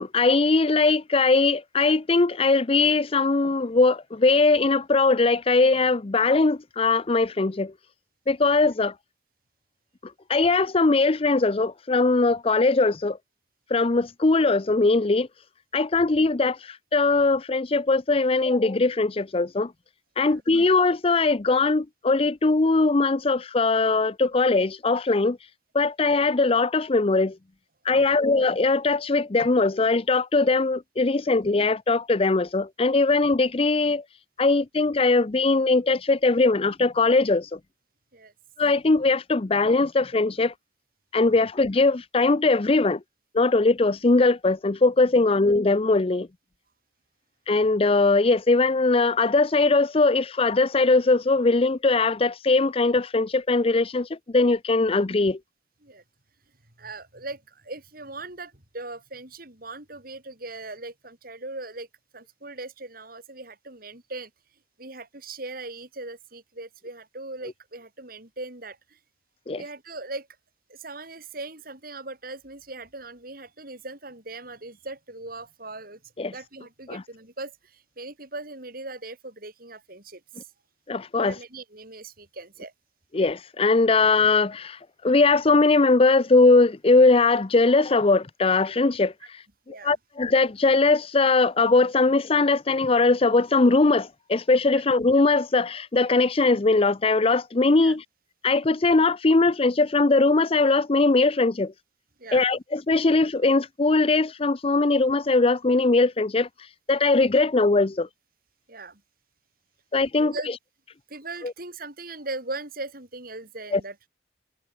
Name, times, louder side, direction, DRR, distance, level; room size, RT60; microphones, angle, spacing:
voice 1, 0.0-7.7 8.3-8.9 10.3-13.2 13.7-15.3 15.7-19.7 20.2-25.4 25.7-27.4 27.9-34.0 34.4-37.6 38.6-40.5 41.1-43.0 43.3-46.3 47.5-55.4 69.5-69.6 76.2-76.3 76.9-77.0 80.9-81.3 83.1-89.1 89.8-98.0 98.4-101.7 102.3-106.5 106.9-108.1 109.9-110.3 111.4-111.5 113.7-113.8, left 3 dB, 30° left, 0.6 m, -21 dB
voice 2, 56.8-61.9 62.1-64.3 64.8-69.0 69.5-70.3 70.7-76.0 76.3-80.5 81.2-82.7 89.7-89.9 97.8-97.9 102.2-102.4 108.7-109.0 110.2-110.5 111.1-114.0, right 2 dB, 50° right, 5.9 m, -39 dB
head